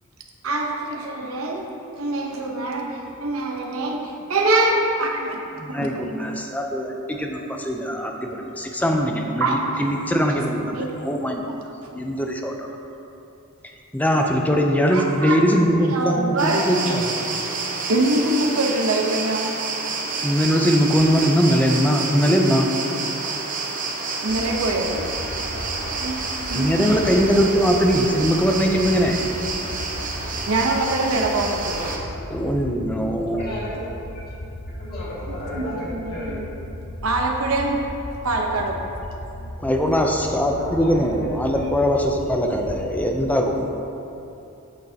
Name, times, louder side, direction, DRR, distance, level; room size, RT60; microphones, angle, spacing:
voice 1, 0.4-1.7 2.0-5.4 5.8-6.3 9.4-10.0 10.3-10.4 10.7-11.0 14.9-15.4 15.9-17.0 17.9-19.6 24.2-25.1 26.0-26.2 26.5-27.4 30.5-32.0 32.6-32.8 35.3-36.4 37.0-37.8 38.2-38.8, right 2 dB, 65° right, 1 dB, 0.8 m, -24 dB
voice 2, 5.6-10.8 11.0-11.4 11.9-12.7 13.9-17.1 20.2-22.7 26.5-29.2 32.3-33.4 39.6-43.7, equal, 5° left, 2 dB, 0.5 m, -21 dB
sound 1, 16.4-32.0, right 4 dB, 35° right, 0.7 m, -29 dB
sound 2, 24.3-43.2, left 1 dB, 80° left, 0.9 m, -36 dB
voice 3, 33.3-33.9 34.1-34.2 34.7-36.4 40.5-41.3 41.5-41.7, left 1 dB, 45° left, -6 dB, 1.5 m, -34 dB
8.3 x 6.5 x 2.8 m, 2.8 s
head